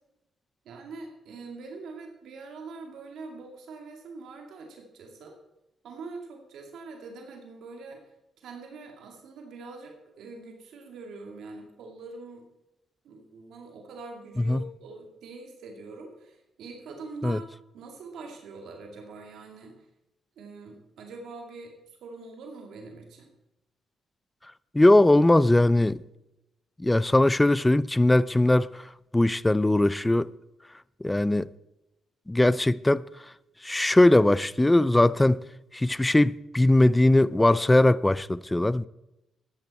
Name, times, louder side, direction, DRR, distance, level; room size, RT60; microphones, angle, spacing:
voice 1, 0.6-5.4 5.8-12.5 13.0-17.5 17.7-19.9 20.4-21.7 22.0-23.3, right 3 dB, 75° right, 2.3 m, -43 dB
voice 2, 24.7-26.0 26.8-28.9 29.1-30.3 31.0-31.5 32.3-33.0 33.6-35.4 35.7-38.9, left 1 dB, 10° left, 0.5 m, -20 dB
14.0 x 10.5 x 4.2 m
cardioid pair, 90°, 0 cm